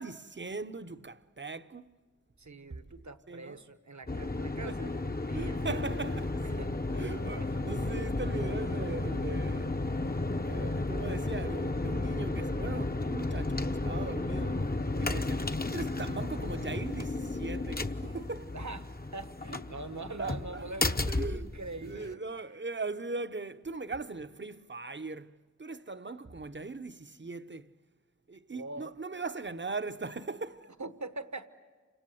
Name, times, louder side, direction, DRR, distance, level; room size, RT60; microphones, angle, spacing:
voice 1, 0.0-1.8 3.3-3.6 4.7-4.9 5.3-6.4 7.0-9.8 10.2-14.6 14.9-18.5 20.2-20.6 21.1-27.7 28.3-30.7, right 3 dB, 40° right, 0.8 m, -40 dB
voice 2, 2.4-5.8 6.4-7.1 7.4-7.5 15.4-15.6 18.5-22.2 28.5-28.9 30.8-31.5, right 2 dB, 70° right, 1.3 m, -43 dB
sound 1, 4.1-22.1, left 2 dB, 30° left, 0.8 m, -33 dB
29.0 x 26.5 x 7.7 m
wide cardioid pair, 40°, 30 cm